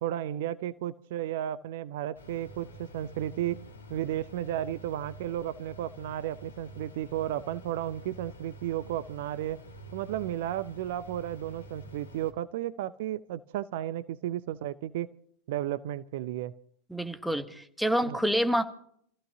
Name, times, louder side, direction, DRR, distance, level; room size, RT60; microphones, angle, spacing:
voice 1, 0.0-3.6 3.9-9.6 9.9-15.1 15.5-16.5 18.1-18.2, right 12 dB, 50° right, 15 dB, 0.6 m, -33 dB
sound 1, 2.1-12.3, equal, 70° left, 2.1 m, -48 dB
voice 2, 16.9-18.6, equal, ahead, 9 dB, 1.3 m, -27 dB
29.0 x 15.0 x 2.8 m, 0.65 s
figure-of-eight pair, 90°, 0 cm